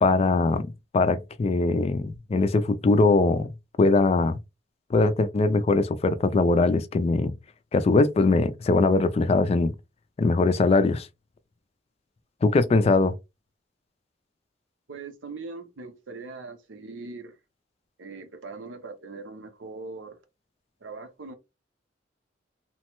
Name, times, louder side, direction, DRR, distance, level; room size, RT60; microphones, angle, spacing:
voice 1, 0.0-3.5 3.8-4.4 4.9-7.3 7.7-9.7 10.2-11.1 12.4-13.2, left 3 dB, 35° left, 0.3 m, -21 dB
voice 2, 14.9-17.4 18.0-20.2 20.8-21.3, right 3 dB, 85° right, 0.7 m, -40 dB
3.0 x 2.1 x 3.0 m
head